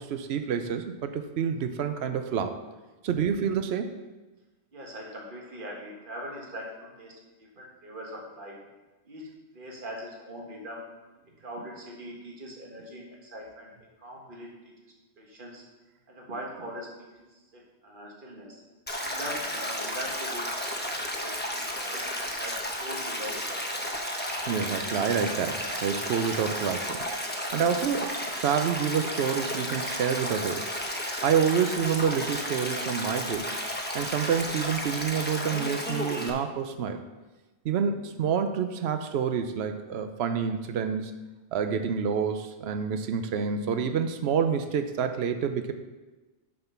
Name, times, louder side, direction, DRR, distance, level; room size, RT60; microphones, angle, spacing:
voice 1, 0.0-2.6 3.0-3.9 24.5-27.1 27.5-30.6 31.2-33.6 33.9-37.0 37.6-41.1 41.5-45.7, right 7 dB, 75° right, 8 dB, 0.9 m, -28 dB
voice 2, 4.7-7.1 7.6-8.5 9.1-10.8 11.4-13.7 14.0-14.5 15.2-15.6 16.1-17.1 17.8-18.6 19.0-20.4 20.8-22.1 22.4-23.8, equal, 50° right, -2 dB, 1.8 m, -41 dB
Stream, 18.9-36.3, equal, 10° left, 0.9 m, -33 dB
6.8 x 6.8 x 5.7 m, 1.2 s
omnidirectional pair, 1.1 m